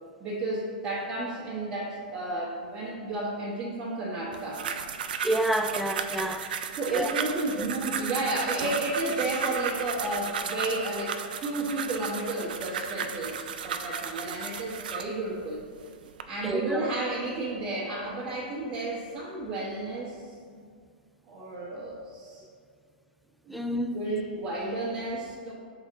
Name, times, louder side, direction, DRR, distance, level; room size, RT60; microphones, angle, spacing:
voice 1, 0.2-4.7 6.8-15.6 16.3-20.6 21.3-22.4 23.5-23.6 23.9-25.5, right 2 dB, 25° right, -10 dB, 1.3 m, -32 dB
sound 1, 4.3-15.1 15.8-16.2, right 7 dB, 75° right, 0.4 m, -34 dB
voice 2, 5.2-6.5 6.9-7.1 7.6-7.7 16.4-16.8 23.5-24.0, right 1 dB, ahead, 6 dB, 0.3 m, -28 dB
5.4 x 3.9 x 4.7 m, 2.1 s
hypercardioid pair, 125°, 5 cm